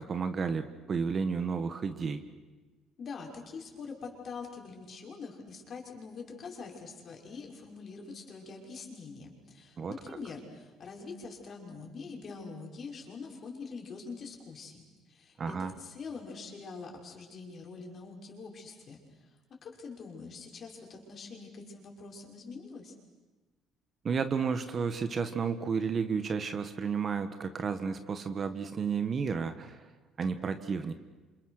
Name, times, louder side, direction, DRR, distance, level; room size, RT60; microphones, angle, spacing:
voice 1, 0.0-2.2 9.8-9.9 15.4-15.7 24.0-29.9 30.2-30.9, right 5 dB, 35° right, 9 dB, 1.4 m, -32 dB
voice 2, 3.0-14.8 15.1-19.0 19.6-22.9, left 4 dB, 40° left, 0 dB, 6.0 m, -44 dB
29.5 x 27.5 x 6.6 m, 1.3 s
cardioid pair, 135°, 0 cm